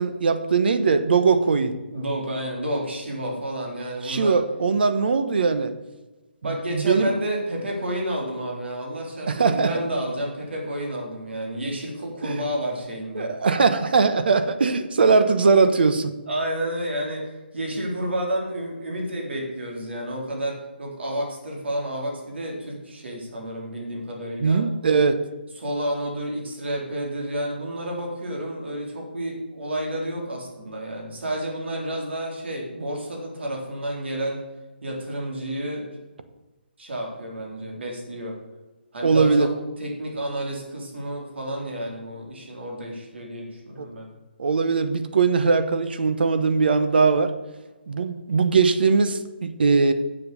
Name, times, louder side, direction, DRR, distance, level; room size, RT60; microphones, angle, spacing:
voice 1, 0.0-1.7 4.0-5.7 6.5-7.1 9.2-9.7 12.2-12.3 13.2-16.1 24.4-25.2 39.0-39.5 43.8-43.9 44.4-47.3 47.9-49.9, right 4 dB, 60° right, 11 dB, 1.0 m, -20 dB
voice 2, 1.9-4.4 6.4-13.3 16.3-24.6 25.6-34.4 34.8-35.9 36.8-38.4 38.9-39.5 39.8-44.1, right 1 dB, 75° right, 0 dB, 3.8 m, -30 dB
7.6 x 7.4 x 6.8 m, 1.1 s
hypercardioid pair, 170°, 6 cm